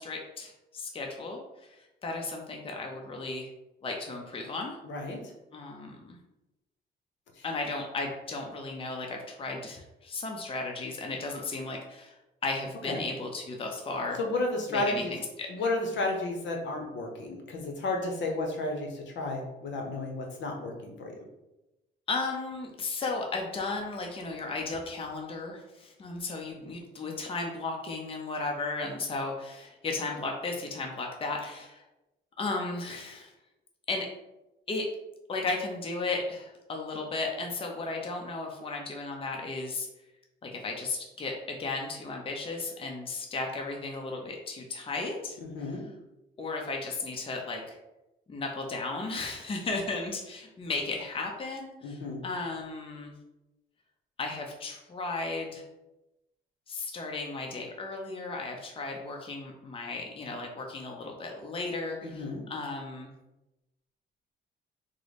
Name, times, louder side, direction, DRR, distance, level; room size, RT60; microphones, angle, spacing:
voice 1, 0.0-1.4 2.0-3.5 3.8-4.7 5.5-6.2 7.4-12.1 12.4-14.2 14.7-15.5 22.1-31.8 32.4-33.3 33.9-34.1 34.7-34.9 35.3-39.9 40.4-45.8 46.4-47.8 48.3-53.1 54.2-55.6 56.7-63.1, left 3 dB, 25° left, 1 dB, 0.6 m, -35 dB
voice 2, 4.9-5.2 12.9-13.0 14.2-15.1 15.5-21.1 45.4-45.8 51.8-52.2 62.0-62.4, left 2 dB, 65° left, 1 dB, 0.8 m, -32 dB
3.7 x 2.0 x 3.2 m, 0.97 s
cardioid pair, 90°, 20 cm